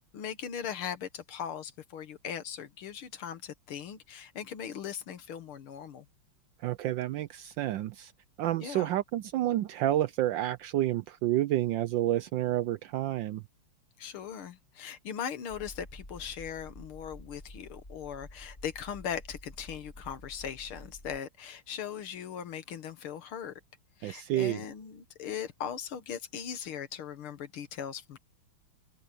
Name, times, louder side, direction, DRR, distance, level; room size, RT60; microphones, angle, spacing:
voice 1, 0.1-6.1 8.6-8.9 14.0-23.5 24.0-28.2, left 8 dB, 75° left, 2.2 m, -39 dB
voice 2, 6.6-8.1 8.4-13.4 24.0-24.6, right 14 dB, 75° right, 1.1 m, -29 dB
sound 1, 15.5-21.2, left 1 dB, 20° left, 6.1 m, -49 dB
omnidirectional pair, 2.4 m